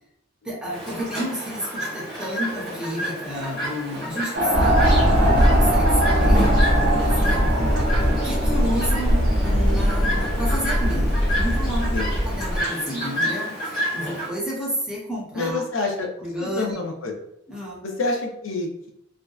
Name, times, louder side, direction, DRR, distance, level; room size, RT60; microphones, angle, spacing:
voice 1, 0.4-6.6 6.9-7.7 8.1-12.0 12.3-15.6 16.2-16.8 17.1-17.2 17.5-17.9, equal, 5° right, -4 dB, 0.6 m, -31 dB
Chirp tweet, 0.7-14.3, equal, 20° left, 1.0 m, -30 dB
sound 1, 4.3-10.4, right 1 dB, 55° right, 0.6 m, -25 dB
sound 2, 4.5-12.6, equal, 50° left, 1.0 m, -21 dB
voice 2, 15.3-16.1 16.4-17.1 17.8-18.9, left 3 dB, 70° left, 2 dB, 0.6 m, -27 dB
2.6 x 2.2 x 2.3 m, 0.77 s
head